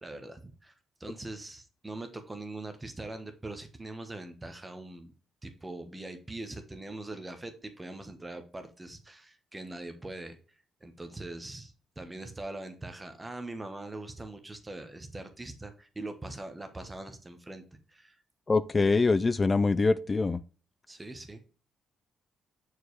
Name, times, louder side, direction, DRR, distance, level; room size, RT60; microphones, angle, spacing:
voice 1, 0.0-0.7 1.0-5.1 5.4-10.4 10.8-17.6 17.9-18.1 20.9-21.4, right 2 dB, 15° right, 1.1 m, -42 dB
voice 2, 18.5-20.4, left 3 dB, 30° left, 0.3 m, -24 dB
6.3 x 4.6 x 3.2 m
cardioid pair, 90°, 0 cm